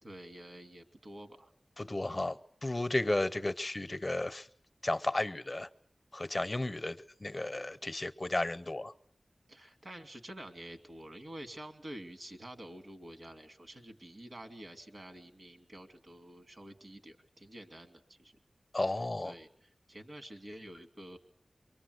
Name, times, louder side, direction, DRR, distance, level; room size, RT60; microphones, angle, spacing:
voice 1, 0.0-1.5 9.5-18.4 18.9-21.2, right 1 dB, 60° right, 2.6 m, -49 dB
voice 2, 1.8-4.5 4.8-5.7 6.1-8.9 18.7-19.3, left 2 dB, 35° left, 0.9 m, -33 dB
24.5 x 23.5 x 8.1 m
wide cardioid pair, 50°, 0 cm